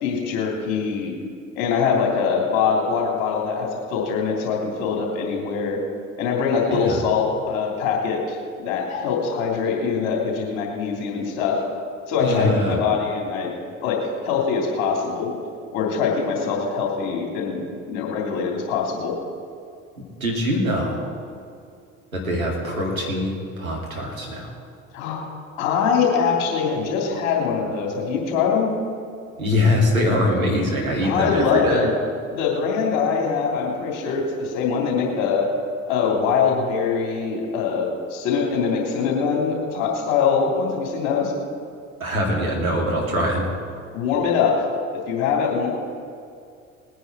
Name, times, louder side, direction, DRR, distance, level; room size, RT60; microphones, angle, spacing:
voice 1, 0.0-1.1 1.5-5.8 6.2-8.4 8.6-11.6 12.1-13.5 13.8-14.0 14.2-15.3 15.7-19.1 24.9-25.3 25.6-28.7 31.0-32.0 32.3-35.5 35.9-41.3 43.9-44.6 44.9-45.7, left 5 dB, 65° left, -1 dB, 3.2 m, -23 dB
voice 2, 12.2-12.8 20.2-21.0 22.1-24.5 29.4-31.9 42.0-43.5, left 1 dB, 90° right, -2 dB, 2.4 m, -23 dB
19.5 x 9.5 x 4.6 m, 2.4 s
figure-of-eight pair, 60°, 40 cm